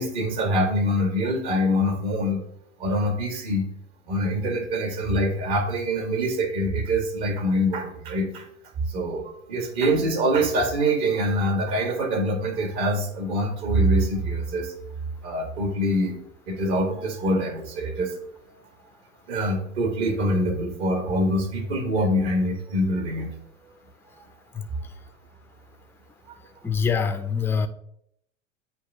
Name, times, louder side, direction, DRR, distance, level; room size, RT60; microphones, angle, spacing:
voice 1, 0.0-2.4 2.8-3.7 4.1-8.5 8.9-14.7 15.2-16.1 16.5-18.1 19.3-23.3 26.3-26.4, equal, 55° right, 4 dB, 2.0 m, -24 dB
voice 2, 26.6-27.7, left 6 dB, 5° left, 8 dB, 0.4 m, -24 dB
8.2 x 2.8 x 6.0 m, 0.71 s
hypercardioid pair, 90°, 39 cm